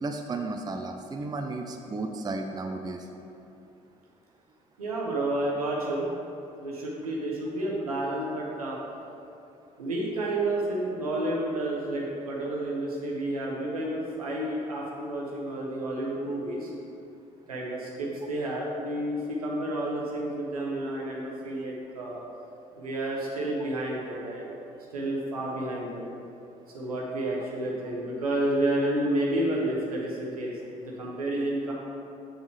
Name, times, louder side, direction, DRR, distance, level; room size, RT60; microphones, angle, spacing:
voice 1, 0.0-3.1, right 3 dB, 20° right, 4 dB, 0.5 m, -33 dB
voice 2, 4.8-6.1 6.6-8.8 9.8-16.7 17.5-22.2 22.8-24.4 24.9-26.0 26.7-30.5 30.8-31.7, right 1 dB, 85° right, -3 dB, 0.9 m, -30 dB
7.1 x 6.2 x 3.2 m, 2.7 s
figure-of-eight pair, 45°, 19 cm